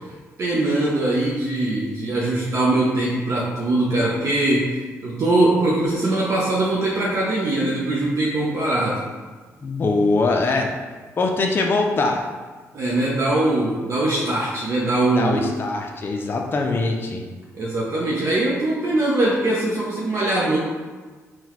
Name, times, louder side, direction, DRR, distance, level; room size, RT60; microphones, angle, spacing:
voice 1, 0.4-9.0 12.7-15.4 17.5-20.6, right 2 dB, 60° right, -5 dB, 0.6 m, -21 dB
voice 2, 9.6-10.8 11.2-12.2 15.2-17.2, left 3 dB, 40° left, 2 dB, 0.4 m, -22 dB
3.8 x 2.2 x 2.9 m, 1.4 s
cardioid pair, 70°, 6 cm